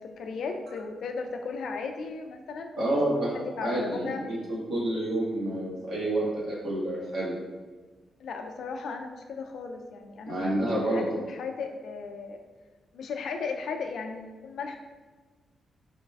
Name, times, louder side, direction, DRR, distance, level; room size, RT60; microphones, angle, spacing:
voice 1, 0.0-3.0 3.3-4.2 8.2-12.4 12.9-14.8, left 4 dB, 70° left, 4 dB, 0.3 m, -36 dB
voice 2, 2.8-7.4 10.2-11.0, right 1 dB, 70° right, -6 dB, 1.3 m, -29 dB
4.0 x 2.3 x 3.2 m, 1.3 s
cardioid pair, 135°, 0 cm